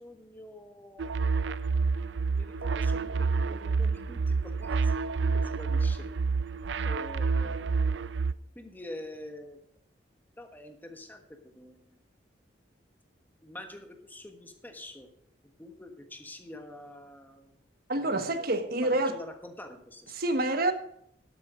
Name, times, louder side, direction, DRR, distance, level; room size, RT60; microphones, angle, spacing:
voice 1, 0.0-1.6 2.3-4.9 5.3-6.1 6.8-7.8 8.5-9.6 10.4-12.0 13.4-15.1 15.4-17.5 17.9-18.5 18.8-20.1, left 1 dB, 10° left, 1.4 m, -46 dB
sound 1, 1.0-8.3, right 4 dB, 80° right, 0.5 m, -28 dB
voice 2, 17.9-19.2 20.2-20.7, right 2 dB, 60° right, 1.3 m, -27 dB
12.5 x 8.1 x 5.0 m
head